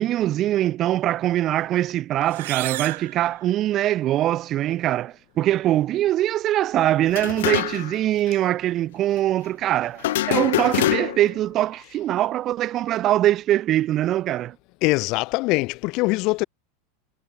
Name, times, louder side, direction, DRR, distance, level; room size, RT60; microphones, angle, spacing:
voice 1, 0.0-14.6, right 13 dB, 40° right, 0.4 m, -22 dB
sound 1, 2.2-4.1, right 17 dB, 75° right, 2.2 m, -34 dB
sound 2, 7.1-8.0 8.3-8.4 10.0-11.4, left 15 dB, 80° left, 0.5 m, -24 dB
voice 2, 14.8-16.4, left 24 dB, 55° left, 1.5 m, -22 dB
hypercardioid pair, 110°, 0 cm